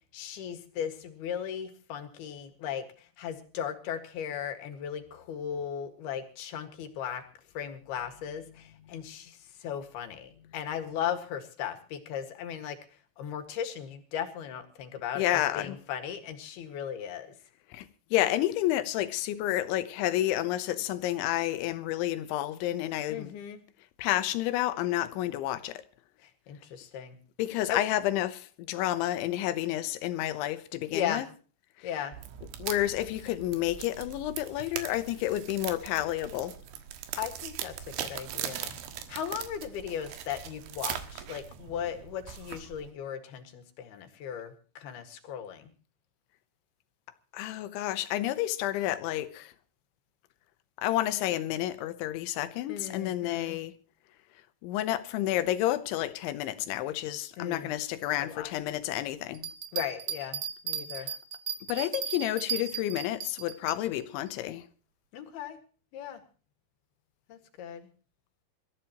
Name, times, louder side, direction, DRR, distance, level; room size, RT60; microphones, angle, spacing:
voice 1, 0.1-7.2 7.6-12.8 13.2-17.3 23.1-23.6 26.2-27.2 27.7-27.8 30.9-31.2 31.8-32.1 37.2-38.8 39.1-45.7 52.7-53.6 57.4-57.7 58.2-58.5 59.7-61.1 65.1-65.6 65.9-66.2 67.3-67.9, left 9 dB, 65° left, 3.5 m, -37 dB
voice 2, 15.2-15.8 17.7-23.3 24.0-25.8 27.4-31.3 31.8-31.9 32.6-36.6 47.3-49.5 50.8-53.8 54.6-59.5 61.0-61.1 61.7-64.7, left 14 dB, 85° left, 3.4 m, -30 dB
sound 1, 32.1-42.9, right 10 dB, 90° right, 3.9 m, -40 dB
Bell, 59.3-63.8 64.3-64.4, right 8 dB, 55° right, 2.1 m, -35 dB
26.5 x 14.0 x 3.0 m
omnidirectional pair, 5.2 m